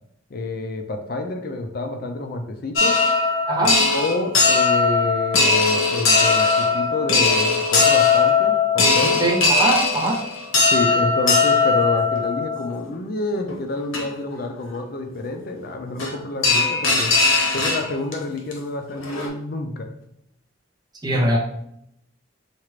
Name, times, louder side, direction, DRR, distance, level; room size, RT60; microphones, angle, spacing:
voice 1, 0.3-3.0 3.9-9.2 10.7-17.2 17.5-19.9, left 2 dB, 45° left, 5 dB, 0.4 m, -28 dB
sound 1, 2.8-12.8 13.5-13.6 13.9-14.0 16.0-16.1 16.4-18.1 18.5-18.6 19.0-19.3, left 4 dB, 80° left, 0.9 m, -19 dB
voice 2, 3.5-3.8 9.0-10.2 21.0-21.4, right 2 dB, 20° right, 0 dB, 0.6 m, -21 dB
4.4 x 2.4 x 3.1 m, 0.75 s
head